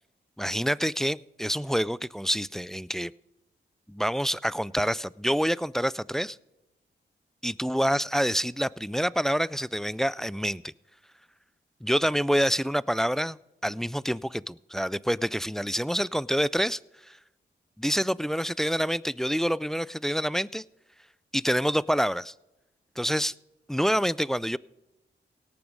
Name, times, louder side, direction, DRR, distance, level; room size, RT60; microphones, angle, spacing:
voice 1, 0.4-3.1 3.9-6.4 7.4-10.7 11.8-13.4 13.6-16.8 17.1-17.2 17.8-20.6 21.3-22.3 23.0-23.3 23.7-24.6, equal, ahead, 21 dB, 0.3 m, -27 dB
17.5 x 7.0 x 5.2 m, 0.96 s
cardioid pair, 50°, 19 cm